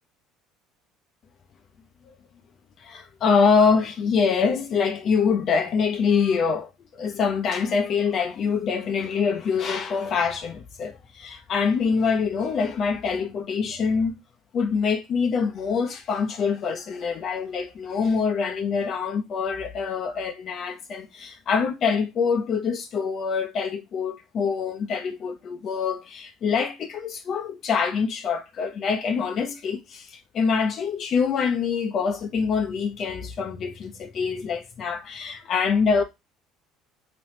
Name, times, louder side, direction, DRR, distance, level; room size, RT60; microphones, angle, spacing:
voice 1, 2.8-14.2 14.5-36.0, left 5 dB, 50° left, 0.6 m, -25 dB
3.2 x 3.0 x 2.8 m
hypercardioid pair, 70°, 0 cm